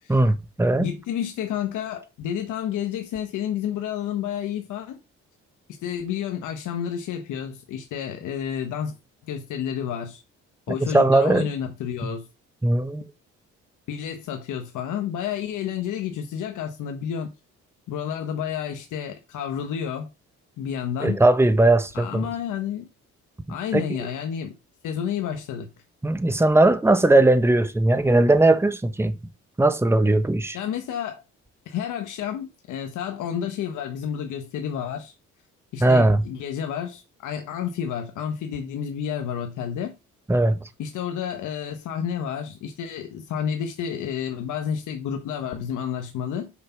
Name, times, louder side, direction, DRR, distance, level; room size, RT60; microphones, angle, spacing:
voice 1, 0.1-0.9 10.9-11.5 12.0-12.1 12.6-13.0 21.0-22.3 23.7-23.8 26.0-29.2 29.6-30.6 35.8-36.2 40.3-40.6, right 2 dB, 10° right, 1.1 m, -19 dB
voice 2, 0.8-5.0 5.8-9.0 9.3-10.2 10.7-12.3 13.9-17.3 17.9-20.1 20.6-21.2 21.9-22.9 23.5-24.6 24.8-25.7 30.5-31.2 31.7-35.1 35.7-39.9 40.8-46.5, left 8 dB, 85° left, 1.3 m, -30 dB
6.5 x 5.6 x 5.8 m
cardioid pair, 90°, 30 cm